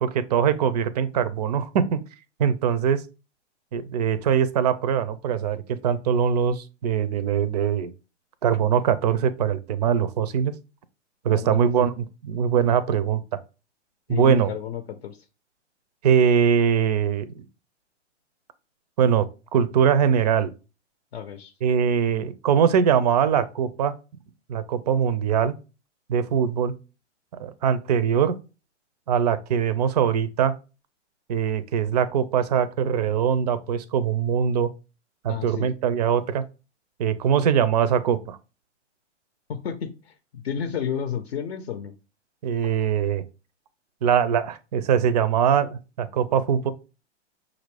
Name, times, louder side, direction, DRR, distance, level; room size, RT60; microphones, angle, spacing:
voice 1, 0.0-2.0 2.4-3.0 3.7-7.9 8.4-10.5 11.2-13.2 14.1-14.5 16.0-17.4 19.0-19.3 19.5-20.5 21.6-23.9 24.5-25.5 26.1-26.7 27.4-28.3 29.1-30.5 31.3-34.7 35.2-36.4 37.0-38.4 42.4-43.2 44.0-46.7, right 8 dB, 35° right, 0.4 m, -22 dB
voice 2, 11.3-11.9 14.1-15.3 21.1-21.5 35.3-35.7 39.5-41.9, left 8 dB, 60° left, 0.6 m, -32 dB
5.9 x 2.6 x 3.2 m
hypercardioid pair, 125°, 36 cm